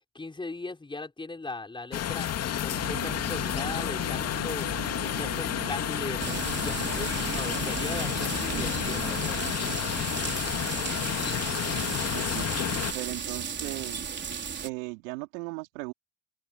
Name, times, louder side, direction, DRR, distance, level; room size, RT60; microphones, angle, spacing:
voice 1, 0.1-2.3 2.6-4.7 5.0-9.4, left 3 dB, 10° left, 6.0 m, -38 dB
sound 1, 1.9-12.9, left 10 dB, 40° left, 2.6 m, -31 dB
sound 2, 2.7-9.5, right 19 dB, 60° right, 4.9 m, -41 dB
sound 3, 6.2-14.7, right 7 dB, 25° right, 3.6 m, -35 dB
voice 2, 11.8-12.7 12.9-14.0 14.6-15.9, right 25 dB, 80° right, 4.1 m, -38 dB
open air
supercardioid pair, 110°, 39 cm